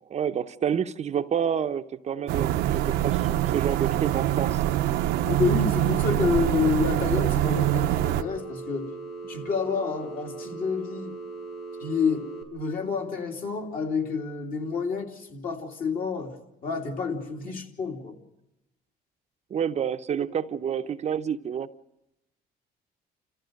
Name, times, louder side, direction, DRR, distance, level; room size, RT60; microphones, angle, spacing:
voice 1, 0.1-4.6 19.5-21.7, right 8 dB, 40° right, 0.7 m, -29 dB
Roomtone Large Building AC, 2.3-8.2, right 14 dB, 85° right, 0.8 m, -24 dB
voice 2, 5.2-8.9 9.3-11.1 11.8-16.4 16.6-18.1, left 5 dB, 55° left, 3.0 m, -29 dB
Telephone, 7.4-12.4, right 4 dB, 85° left, 5.0 m, -39 dB
29.5 x 14.5 x 6.4 m
cardioid pair, 110°, 17 cm